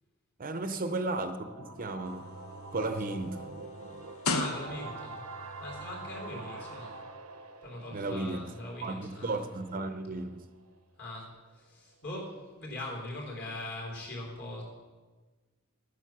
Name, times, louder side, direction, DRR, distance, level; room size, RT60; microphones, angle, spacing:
voice 1, 0.4-2.3 2.7-3.5 7.9-8.5 8.8-10.4, right 2 dB, 40° right, 0.6 m, -34 dB
sound 1, 1.1-10.8, right 3 dB, 85° right, 0.8 m, -46 dB
sound 2, 1.6-7.2, right 1 dB, 30° left, 1.0 m, -52 dB
sound 3, 2.1-5.2 6.1-6.2, left 3 dB, 70° left, 0.9 m, -36 dB
voice 2, 4.3-5.2 5.6-7.0 7.6-9.4 11.0-14.6, left 1 dB, 50° left, 3.8 m, -41 dB
12.0 x 9.3 x 6.0 m
head